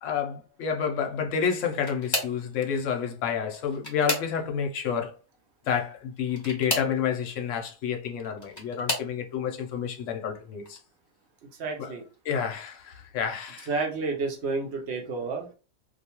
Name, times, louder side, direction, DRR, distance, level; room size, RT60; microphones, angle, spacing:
voice 1, 0.0-5.2 5.7-10.8 11.8-11.9 12.2-13.7, left 7 dB, 65° left, 0.9 m, -29 dB
sound 1, 1.4-2.5 3.4-4.7 6.3-7.0 8.1-9.1 9.9-10.2 10.7-10.8 12.1-12.2, left 1 dB, 15° left, 0.7 m, -33 dB
voice 2, 11.6-12.0 13.7-15.5, right 4 dB, 60° right, 0.8 m, -30 dB
2.4 x 2.2 x 2.8 m
omnidirectional pair, 1.5 m